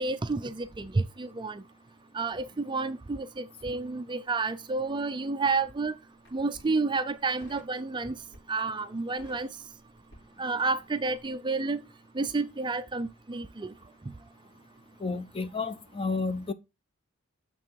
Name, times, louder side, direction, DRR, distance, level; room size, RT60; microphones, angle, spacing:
voice 1, 0.0-1.6 2.1-6.0 6.3-8.2 8.5-9.5 10.4-11.8 12.1-13.7, right 3 dB, 20° right, 0.4 m, -30 dB
Crackle, 4.6-5.6 6.1-6.7 7.4-7.8 8.2-8.6 8.9-10.9 11.1-11.3, equal, 55° left, 5.7 m, -55 dB
voice 2, 15.0-16.5, left 4 dB, 25° left, 0.6 m, -31 dB
6.8 x 6.1 x 4.6 m
head